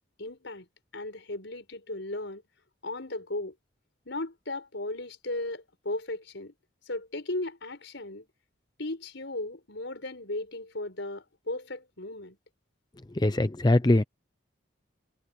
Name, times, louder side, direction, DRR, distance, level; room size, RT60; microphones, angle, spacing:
voice 1, 0.2-0.7 0.9-2.4 2.8-3.5 4.0-6.5 6.9-8.3 8.8-12.4, left 2 dB, 70° left, 4.9 m, -36 dB
voice 2, 13.1-14.0, left 1 dB, 20° left, 0.6 m, -22 dB
head